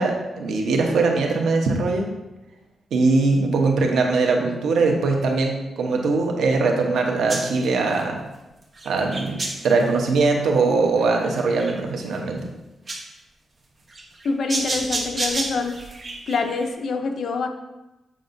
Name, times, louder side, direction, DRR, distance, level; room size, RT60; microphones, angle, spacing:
voice 1, 0.0-2.1 2.9-8.2 8.8-9.3 9.6-12.4, right 3 dB, 90° right, 2 dB, 0.9 m, -21 dB
sound 1, 7.3-8.0 8.8-9.8 11.0-11.7 12.2-12.3 12.9-13.0 13.9-16.7, right 2 dB, 35° right, 0.9 m, -30 dB
voice 2, 14.2-15.8 16.3-17.5, left 4 dB, 65° left, 5 dB, 0.6 m, -25 dB
7.3 x 5.2 x 2.6 m, 1.0 s
cardioid pair, 120°, 0 cm